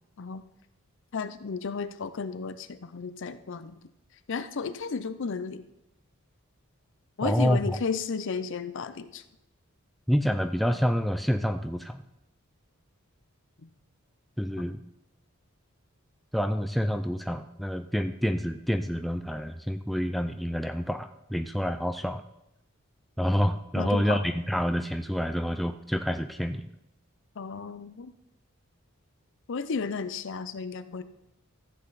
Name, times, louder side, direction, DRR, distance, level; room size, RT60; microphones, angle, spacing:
voice 1, 1.1-3.8 4.3-5.6 7.2-9.2 13.6-13.7 23.8-24.2 27.4-28.1 29.5-31.0, left 5 dB, 60° left, 12 dB, 0.5 m, -33 dB
voice 2, 7.2-7.8 10.1-12.0 14.4-14.8 16.3-22.2 23.2-26.7, equal, ahead, 8 dB, 0.3 m, -28 dB
14.0 x 7.7 x 4.0 m, 0.85 s
head